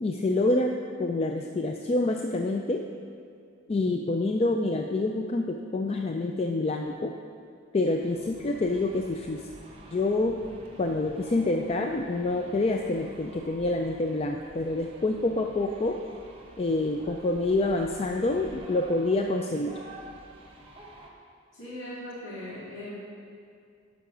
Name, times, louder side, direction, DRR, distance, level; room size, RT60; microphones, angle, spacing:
voice 1, 0.0-2.8 3.7-7.1 7.7-9.4 9.9-10.4 10.8-16.0 16.6-19.8, left 2 dB, 30° left, 3 dB, 0.4 m, -27 dB
sound 1, 7.8-21.1, right 1 dB, 30° right, 1.0 m, -49 dB
voice 2, 21.5-22.9, left 1 dB, 65° left, -9 dB, 2.2 m, -39 dB
10.0 x 5.8 x 6.1 m, 2.3 s
head